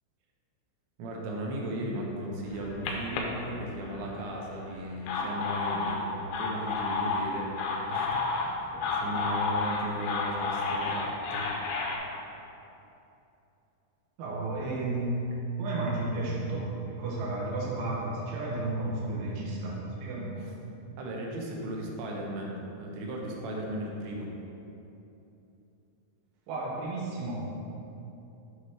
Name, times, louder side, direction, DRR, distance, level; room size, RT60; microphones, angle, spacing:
voice 1, 1.0-11.5 20.4-20.5 21.0-24.3, right 1 dB, 90° right, -1 dB, 3.1 m, -36 dB
sound 1, 2.5-4.1 4.8-12.0, left 4 dB, 80° left, 2.3 m, -31 dB
voice 2, 14.2-15.2 15.6-20.5 26.5-27.5, right 2 dB, 65° right, -5 dB, 2.0 m, -32 dB
8.0 x 3.1 x 5.7 m, 2.9 s
omnidirectional pair, 4.9 m